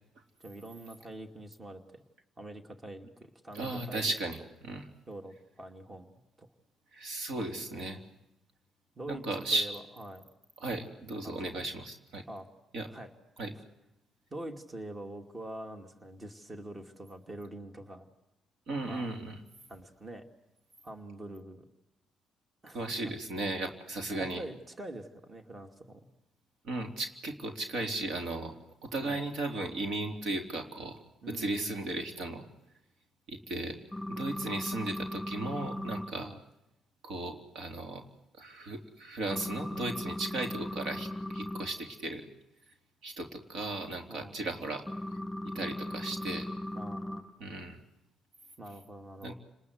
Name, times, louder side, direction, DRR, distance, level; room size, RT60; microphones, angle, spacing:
voice 1, 0.4-2.0 2.4-4.1 5.1-6.5 7.3-7.9 9.0-9.2 9.5-10.2 11.2-11.6 12.3-12.5 12.9-13.1 14.3-18.1 18.8-19.1 19.7-20.3 20.8-21.7 22.6-23.1 24.1-26.1 29.0-29.2 31.2-32.0 36.2-36.4 44.1-44.4 46.7-47.5 48.6-49.3, right 1 dB, 25° right, 5 dB, 2.5 m, -45 dB
voice 2, 3.5-4.9 6.9-8.0 9.1-9.7 10.6-12.2 12.7-12.9 13.4-13.5 18.7-19.4 22.7-24.4 26.6-28.5 28.8-31.0 31.3-32.5 33.3-33.8 34.1-36.3 37.0-38.0 38.4-42.3 43.0-44.9 45.5-46.5 47.4-47.8 49.2-49.3, right 2 dB, 75° right, 4 dB, 3.5 m, -36 dB
sound 1, 33.9-36.1 39.3-41.7 44.9-47.2, left 1 dB, 5° left, 6.2 m, -38 dB
29.5 x 20.5 x 8.1 m, 0.91 s
cardioid pair, 90°, 0 cm